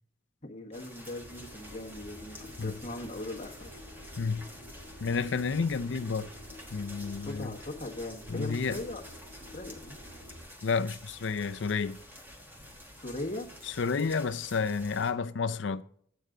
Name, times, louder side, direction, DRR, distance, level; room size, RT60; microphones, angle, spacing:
voice 1, 0.4-3.7 7.2-9.0 9.5-10.0 13.0-13.5, left 1 dB, 35° left, 1.4 m, -39 dB
sound 1, 0.7-15.1, equal, 10° right, 1.3 m, -49 dB
sound 2, 1.0-10.4, left 1 dB, 60° right, 3.0 m, -49 dB
voice 2, 4.2-4.5 5.0-6.3 6.7-7.5 8.3-8.8 10.6-12.0 13.7-15.8, left 5 dB, 65° left, 0.5 m, -30 dB
9.2 x 8.5 x 3.7 m
head